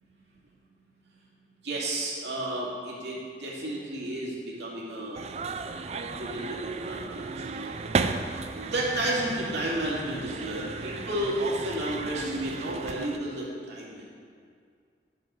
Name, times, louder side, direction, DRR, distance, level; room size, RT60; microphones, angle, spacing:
voice 1, 1.6-5.2 5.9-7.7 8.3-14.0, right 1 dB, 80° right, -5 dB, 2.5 m, -32 dB
sound 1, 5.1-13.2, right 4 dB, 35° right, 0.4 m, -34 dB
10.0 x 7.6 x 5.2 m, 2.2 s
head